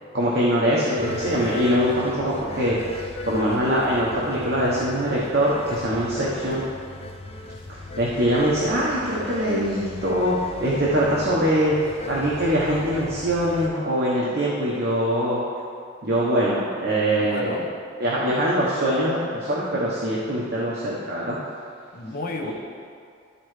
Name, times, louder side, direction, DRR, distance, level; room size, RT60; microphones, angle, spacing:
voice 1, 0.1-6.6 8.0-15.4 16.0-17.6 18.0-21.4 22.4-22.5, equal, 55° right, -6 dB, 1.0 m, -23 dB
sound 1, 1.0-13.7, left 2 dB, 30° left, 0.4 m, -37 dB
voice 2, 17.2-17.7 21.9-22.5, left 1 dB, 45° left, 2 dB, 0.8 m, -32 dB
12.5 x 4.4 x 3.2 m, 2.4 s
head